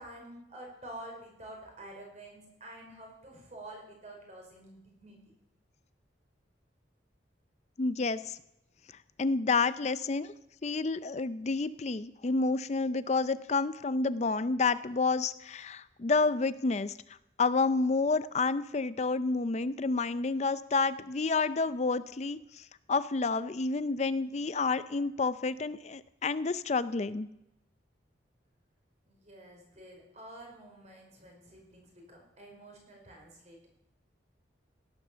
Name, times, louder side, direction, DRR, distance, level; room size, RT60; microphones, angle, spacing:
voice 1, 0.0-5.2 29.1-33.7, right 1 dB, 35° right, 1 dB, 5.1 m, -49 dB
voice 2, 7.8-8.4 9.2-10.3 10.6-16.9 17.4-27.3, left 3 dB, 35° left, 14 dB, 0.4 m, -29 dB
17.5 x 10.5 x 6.8 m, 0.85 s
head